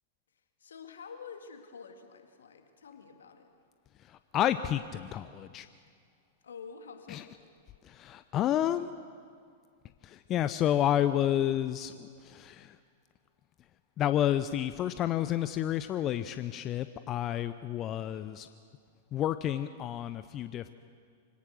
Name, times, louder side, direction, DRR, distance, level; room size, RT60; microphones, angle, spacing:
voice 1, 0.6-3.5 6.4-7.3, left 6 dB, 75° left, 6 dB, 2.1 m, -48 dB
voice 2, 4.0-5.7 7.1-7.3 7.8-8.9 10.0-12.8 14.0-18.5 19.1-20.7, left 11 dB, 35° left, 12 dB, 0.6 m, -30 dB
24.0 x 17.5 x 6.4 m, 2.1 s
figure-of-eight pair, 100°, 0 cm